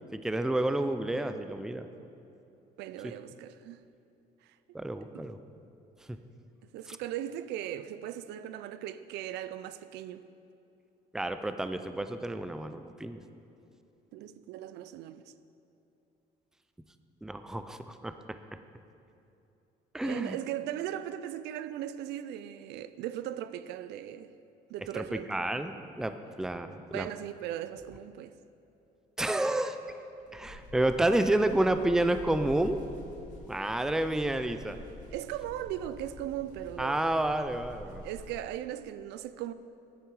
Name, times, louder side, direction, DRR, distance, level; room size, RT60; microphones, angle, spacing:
voice 1, 0.1-1.9 4.7-5.4 6.1-6.2 6.9-7.0 11.1-13.2 17.2-18.4 19.9-20.4 24.9-27.1 29.2-29.8 30.3-32.8 33.5-34.8 36.8-38.0, right 1 dB, 5° right, 0.4 m, -30 dB
voice 2, 2.8-3.8 5.1-5.2 6.7-10.2 14.1-15.3 20.0-24.3 24.7-25.3 26.9-28.3 35.1-37.0 38.0-39.5, right 11 dB, 85° right, 0.4 m, -38 dB
sound 1, 30.3-38.5, left 1 dB, 45° left, 2.4 m, -48 dB
9.1 x 8.8 x 4.8 m
cardioid pair, 110°, 17 cm